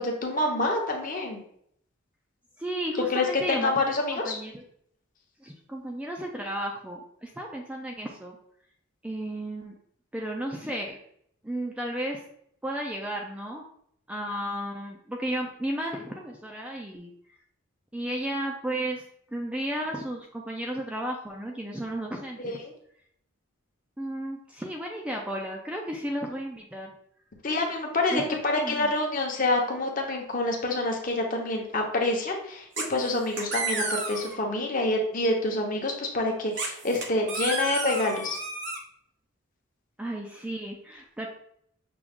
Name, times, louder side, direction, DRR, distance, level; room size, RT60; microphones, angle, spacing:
voice 1, 0.0-1.4 3.1-4.4 22.4-22.7 27.4-38.4, left 2 dB, 40° left, 1 dB, 0.8 m, -27 dB
voice 2, 2.6-3.7 4.1-4.6 5.4-8.4 9.0-9.7 10.1-11.0 11.4-12.2 12.6-13.6 14.1-17.1 17.9-19.0 19.3-22.6 24.0-26.9 28.1-28.9 40.0-41.3, right 1 dB, 5° right, 0 dB, 0.3 m, -33 dB
sound 1, 32.8-33.1 33.4-34.4 36.6-38.8, right 3 dB, 55° right, 0.8 m, -31 dB
6.0 x 2.4 x 3.4 m, 0.68 s
head